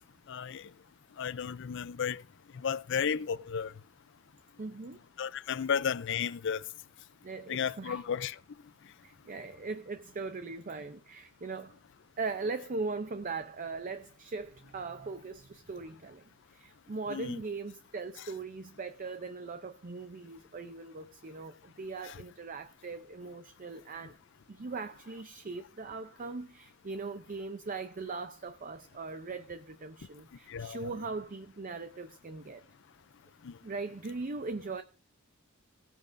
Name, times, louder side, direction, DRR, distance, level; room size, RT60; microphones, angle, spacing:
voice 1, 0.3-0.7 1.2-2.2 2.5-3.7 5.2-6.6 7.5-8.4 17.1-17.4 22.0-22.2 30.5-30.9 33.4-33.6, left 7 dB, 65° left, 0.5 m, -33 dB
voice 2, 4.6-5.0 7.2-8.0 9.0-11.7 12.2-16.2 16.5-24.2 24.5-32.6 33.6-34.8, right 3 dB, 40° right, 0.6 m, -40 dB
17.5 x 10.0 x 2.6 m
head